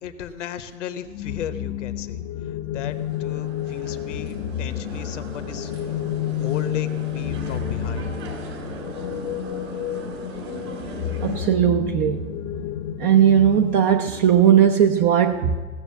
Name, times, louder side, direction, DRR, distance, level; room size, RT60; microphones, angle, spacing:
voice 1, 0.0-5.9 6.4-8.1, left 8 dB, 60° left, 11 dB, 1.0 m, -35 dB
sound 1, 1.1-13.8, left 11 dB, 35° left, 0.6 m, -30 dB
sound 2, 2.9-11.5, right 3 dB, 65° right, 3.0 m, -38 dB
voice 2, 11.2-12.4 13.0-15.6, right 9 dB, 25° right, 6 dB, 0.4 m, -18 dB
16.0 x 6.8 x 7.4 m, 1.5 s
figure-of-eight pair, 95°, 41 cm